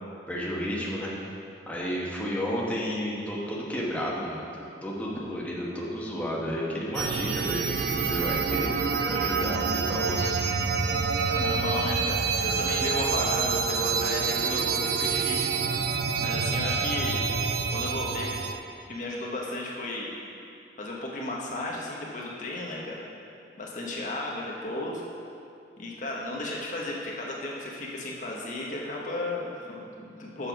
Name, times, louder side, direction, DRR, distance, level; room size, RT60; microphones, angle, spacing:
voice 1, 0.3-1.1 1.7-10.4, equal, 10° left, -5 dB, 1.0 m, -32 dB
sound 1, 6.9-18.6, right 5 dB, 60° right, 0.4 m, -27 dB
voice 2, 11.2-17.3 17.7-18.4 18.9-20.1 20.8-23.0 23.6-25.0 25.8-30.5, left 2 dB, 45° left, -3 dB, 0.9 m, -34 dB
7.1 x 5.5 x 5.8 m, 2.5 s
head